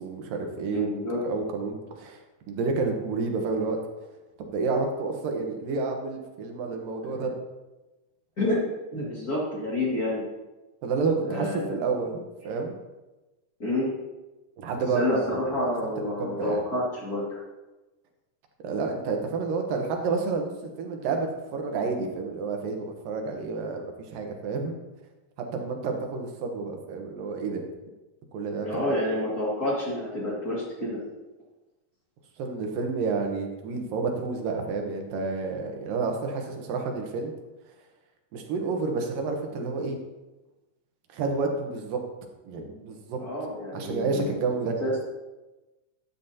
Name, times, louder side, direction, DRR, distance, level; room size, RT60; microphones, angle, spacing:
voice 1, 0.0-0.9 1.2-2.2 2.5-3.8 4.4-7.3 10.8-12.7 14.6-15.4 16.0-16.6 18.6-20.5 20.8-24.7 25.4-27.6 28.3-29.0 32.4-37.3 38.3-40.0 41.1-42.0 42.5-43.2 43.7-44.8, right 4 dB, 85° right, 3 dB, 2.9 m, -30 dB
voice 2, 0.7-1.2 8.4-8.6 8.9-10.3 11.2-11.8 13.6-13.9 14.9-17.4 28.6-31.0 43.2-44.3 44.8-44.9, left 1 dB, 30° left, -6 dB, 2.3 m, -28 dB
12.5 x 9.5 x 2.8 m, 1.1 s
omnidirectional pair, 3.9 m